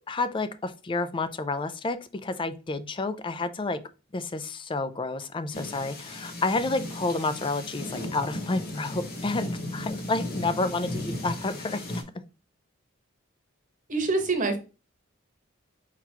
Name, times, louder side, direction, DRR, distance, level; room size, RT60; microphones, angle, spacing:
voice 1, 0.1-3.8 4.1-11.8, left 3 dB, 25° left, 12 dB, 0.4 m, -30 dB
sound 1, 5.5-12.0, left 1 dB, 50° left, 1.2 m, -36 dB
voice 2, 13.9-14.6, right 3 dB, 40° right, 5 dB, 1.0 m, -25 dB
4.4 x 3.9 x 2.9 m, 0.31 s
head